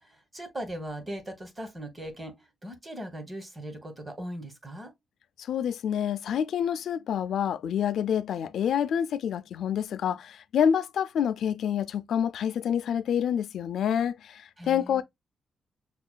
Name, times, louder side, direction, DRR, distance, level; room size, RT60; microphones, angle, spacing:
voice 1, 0.0-4.9 14.6-15.0, right 1 dB, 20° right, 1.0 m, -39 dB
voice 2, 5.4-15.0, left 8 dB, 75° left, 0.3 m, -27 dB
5.6 x 2.2 x 2.2 m
wide cardioid pair, 140°, 0 cm